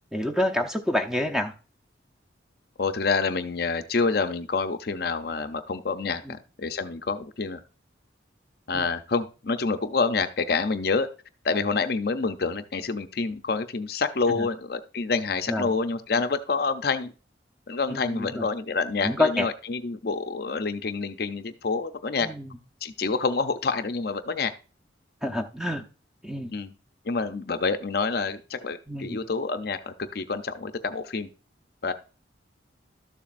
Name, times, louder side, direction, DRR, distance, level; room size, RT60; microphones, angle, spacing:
voice 1, 0.1-1.5 6.3-6.4 8.7-8.9 14.3-14.5 15.5-15.7 17.9-18.5 19.0-19.5 22.2-22.6 25.2-25.8 26.2-26.5 28.9-29.2, left 1 dB, ahead, 5 dB, 0.7 m, -27 dB
voice 2, 2.8-7.6 8.7-11.1 11.4-17.1 17.7-22.3 22.8-24.5 26.5-26.7 27.1-31.3 31.8-31.9, left 4 dB, 55° left, 9 dB, 0.6 m, -27 dB
12.5 x 7.1 x 2.5 m, 0.35 s
head